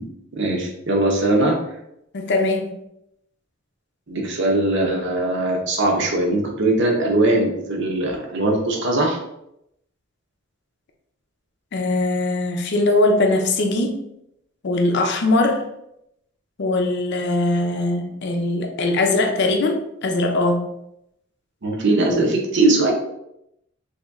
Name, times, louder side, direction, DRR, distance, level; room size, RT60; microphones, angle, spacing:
voice 1, 0.3-1.6 4.1-9.2 21.6-22.9, right 2 dB, 60° right, 1 dB, 0.8 m, -20 dB
voice 2, 2.1-2.7 11.7-14.0 14.6-15.6 16.6-20.7, left 2 dB, 60° left, 4 dB, 0.5 m, -21 dB
3.1 x 2.8 x 3.5 m, 0.80 s
head